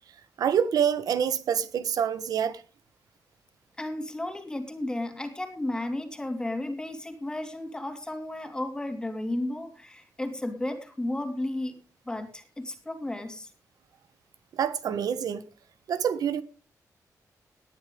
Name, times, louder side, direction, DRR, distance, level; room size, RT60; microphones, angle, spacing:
voice 1, 0.4-2.6 14.5-15.4 15.9-16.4, right 8 dB, 90° right, 1.3 m, -26 dB
voice 2, 3.8-11.7 12.1-13.5, left 1 dB, 10° left, 2.7 m, -33 dB
19.0 x 10.5 x 3.8 m
wide cardioid pair, 140°, 6 cm